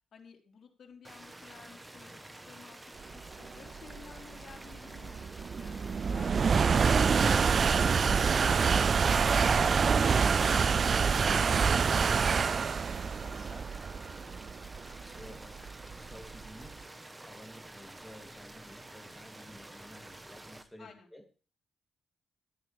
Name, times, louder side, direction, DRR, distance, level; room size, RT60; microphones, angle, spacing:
voice 1, 0.1-5.2 5.6-7.5 20.8-21.1, left 6 dB, 60° left, 0 dB, 3.4 m, -54 dB
sound 1, 1.0-20.6, right 1 dB, 15° right, 1.2 m, -49 dB
sound 2, 3.3-16.7, right 5 dB, 45° right, 0.4 m, -26 dB
voice 2, 7.7-11.4 11.9-14.5 15.0-16.9 17.2-21.2, left 1 dB, ahead, 1 dB, 3.0 m, -51 dB
13.0 x 9.9 x 3.5 m, 0.38 s
cardioid pair, 90°, 0 cm